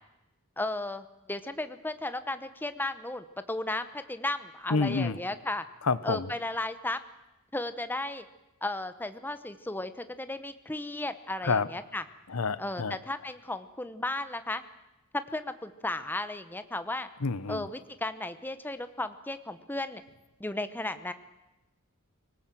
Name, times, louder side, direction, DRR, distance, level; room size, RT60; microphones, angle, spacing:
voice 1, 0.6-5.7 6.0-7.0 7.5-8.2 8.6-12.0 12.6-14.6 15.1-17.1 17.5-20.0 20.4-21.1, left 2 dB, 10° left, 11 dB, 0.9 m, -34 dB
voice 2, 4.7-5.2 5.8-6.3 11.4-11.7 12.3-13.0 17.2-17.7, left 4 dB, 80° left, 16 dB, 0.9 m, -28 dB
25.0 x 17.5 x 7.7 m, 0.99 s
head